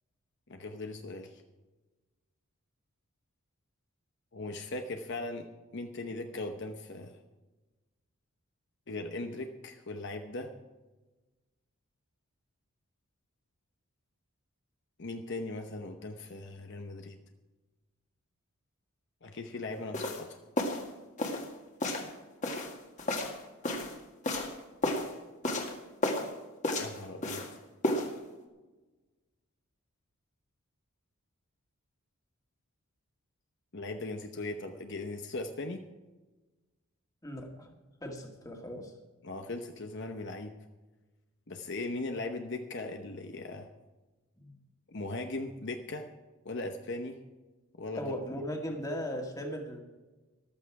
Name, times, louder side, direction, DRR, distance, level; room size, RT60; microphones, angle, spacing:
voice 1, 0.5-1.4 4.3-5.5 5.7-7.2 8.9-10.5 15.0-17.2 19.2-20.3 26.8-27.4 33.7-35.8 39.2-40.5 41.5-43.7 44.9-46.1 46.4-47.2 47.8-48.1, left 2 dB, 50° left, 5 dB, 0.9 m, -39 dB
sound 1, 19.9-20.2 20.6-20.9 21.2-21.5 21.8-22.1 22.4-24.0 24.2-24.5 24.8-25.1 25.4-25.8 26.0-26.3 26.6-27.5 27.8-28.1, left 1 dB, 35° left, 1.8 m, -32 dB
voice 2, 37.2-37.7 38.0-38.9 44.4-44.6 47.9-49.8, equal, 15° left, 2 dB, 1.9 m, -38 dB
14.5 x 12.5 x 4.8 m, 1.2 s
head